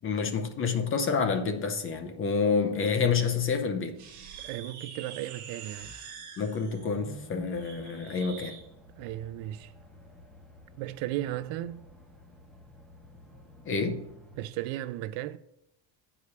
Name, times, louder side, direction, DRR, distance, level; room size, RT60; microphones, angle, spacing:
voice 1, 0.0-4.0 6.4-8.6 13.7-14.1, left 5 dB, 25° left, 0.6 m, -28 dB
sound 1, 3.9-8.6, right 6 dB, 35° right, 1.4 m, -45 dB
voice 2, 4.4-5.9 9.0-9.7 10.8-11.8 14.4-15.4, right 14 dB, 70° right, 0.6 m, -35 dB
sound 2, 6.7-14.5, equal, ahead, 1.2 m, -53 dB
8.3 x 4.9 x 6.6 m
cardioid pair, 175°, 48 cm